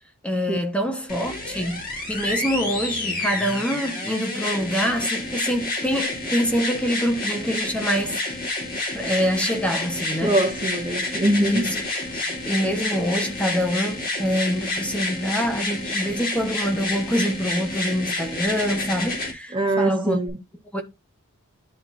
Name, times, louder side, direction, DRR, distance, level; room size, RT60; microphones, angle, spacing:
voice 1, 0.2-8.2 8.9-10.4 11.4-11.8 12.1-20.2 20.7-20.8, equal, 5° left, 1.4 m, -25 dB
sound 1, 1.1-19.3 20.3-20.4, left 2 dB, 45° left, 3.8 m, -29 dB
voice 2, 10.2-11.7 19.5-20.4, right 1 dB, 20° right, 0.9 m, -23 dB
12.0 x 4.5 x 2.8 m
head